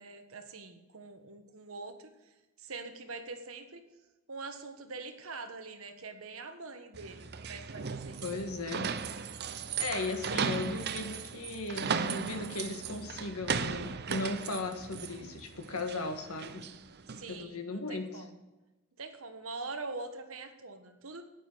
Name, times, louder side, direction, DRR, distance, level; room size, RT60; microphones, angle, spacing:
voice 1, 0.0-2.1 2.6-3.9 4.3-8.2 9.4-10.1 10.3-10.6 17.1-18.4 19.0-21.2, right 3 dB, 70° right, 6 dB, 1.4 m, -44 dB
sound 1, 6.9-17.4, right 6 dB, 50° right, 0.6 m, -37 dB
voice 2, 8.2-8.9 9.8-16.6 17.3-18.2, left 3 dB, 85° left, 5 dB, 1.7 m, -37 dB
9.4 x 9.1 x 6.2 m, 1.1 s
head